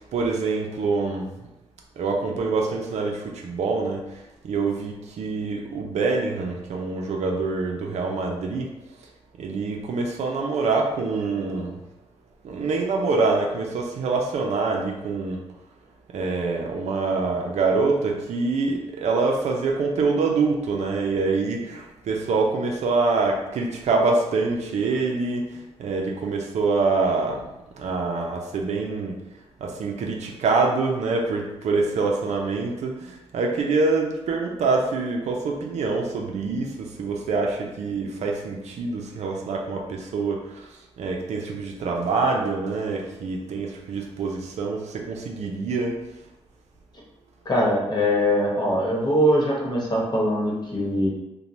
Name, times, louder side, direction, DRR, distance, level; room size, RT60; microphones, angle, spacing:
voice 1, 0.1-1.3 2.0-4.0 4.4-8.7 9.4-11.8 12.4-15.4 16.1-27.5 27.8-29.2 29.6-40.7 41.0-45.9, right 3 dB, 80° right, 0 dB, 0.5 m, -25 dB
voice 2, 47.4-51.1, equal, 40° left, -4 dB, 1.0 m, -22 dB
2.9 x 2.2 x 2.6 m, 0.94 s
cardioid pair, 65°, 11 cm